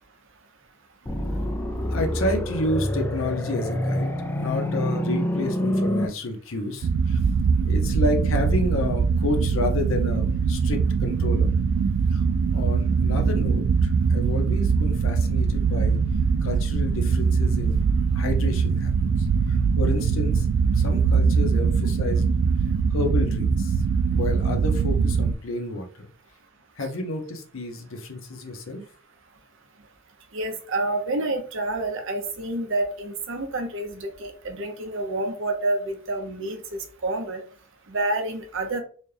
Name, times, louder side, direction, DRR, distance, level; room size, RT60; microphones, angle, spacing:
sound 1, 1.1-6.1, left 1 dB, 10° left, 0.4 m, -27 dB
voice 1, 1.9-7.2 7.6-11.5 12.1-12.2 12.5-16.0 16.4-17.8 18.1-18.9 19.2-20.5 20.7-22.3 22.9-23.8 24.1-26.1 26.8-28.8, left 2 dB, 70° left, 3 dB, 0.9 m, -30 dB
sound 2, 6.8-25.3, right 5 dB, 90° right, 0.3 m, -22 dB
voice 2, 30.3-37.4 37.9-38.8, right 2 dB, 65° right, 5 dB, 0.8 m, -28 dB
4.2 x 2.3 x 3.3 m, 0.42 s
head